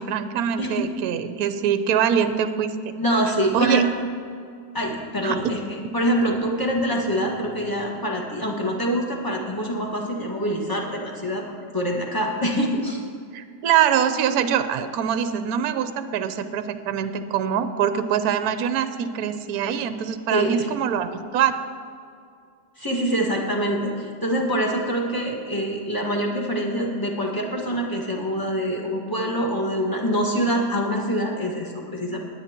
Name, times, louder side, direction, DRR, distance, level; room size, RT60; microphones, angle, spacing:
voice 1, 0.0-2.9 3.5-3.8 5.2-5.4 13.3-21.5, right 9 dB, 70° right, 10 dB, 1.1 m, -24 dB
voice 2, 3.0-3.9 4.7-11.5 11.7-13.0 20.3-20.7 22.8-32.2, equal, 15° left, -1 dB, 1.5 m, -25 dB
21.0 x 9.1 x 2.9 m, 2.3 s
omnidirectional pair, 1.8 m